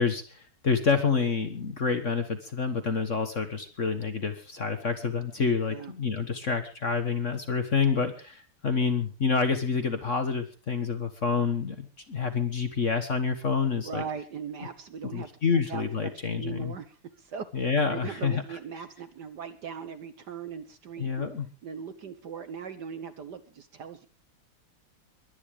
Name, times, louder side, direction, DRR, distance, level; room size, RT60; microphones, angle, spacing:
voice 1, 0.0-14.0 15.1-16.7 17.5-18.4 21.0-21.5, left 5 dB, 40° left, 8 dB, 1.5 m, -28 dB
voice 2, 13.8-21.3 21.6-24.1, right 6 dB, 55° right, 11 dB, 1.5 m, -40 dB
22.5 x 9.9 x 4.9 m, 0.35 s
omnidirectional pair, 2.4 m